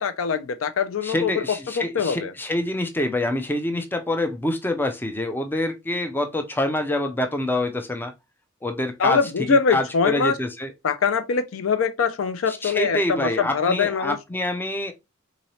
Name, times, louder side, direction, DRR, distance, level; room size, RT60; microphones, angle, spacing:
voice 1, 0.0-2.3 9.0-10.4 10.8-14.2, left 6 dB, 75° left, 0.4 m, -23 dB
voice 2, 1.0-8.1 8.6-9.2 9.5-10.7 12.5-14.9, left 1 dB, 10° left, 0.4 m, -26 dB
3.8 x 3.1 x 2.7 m
head